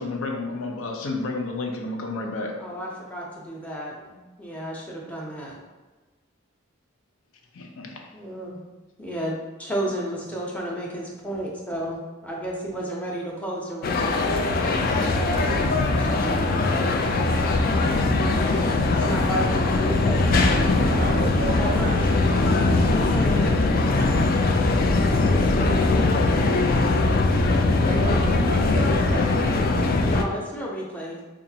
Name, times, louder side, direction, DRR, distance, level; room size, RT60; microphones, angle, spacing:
voice 1, 0.0-2.6 7.5-8.1 19.0-19.1, left 3 dB, 90° left, 2 dB, 0.6 m, -31 dB
voice 2, 2.6-5.5 8.1-8.6 9.0-14.2 15.2-17.0 18.9-20.5 21.6-23.6 24.9-26.1 30.0-31.2, right 1 dB, 5° left, -3 dB, 0.6 m, -33 dB
sound 1, 13.8-30.2, left 2 dB, 45° left, 0.3 m, -21 dB
voice 3, 20.9-22.0 27.8-29.7, right 2 dB, 45° right, 4 dB, 0.4 m, -32 dB
4.9 x 2.4 x 2.7 m, 1.2 s
head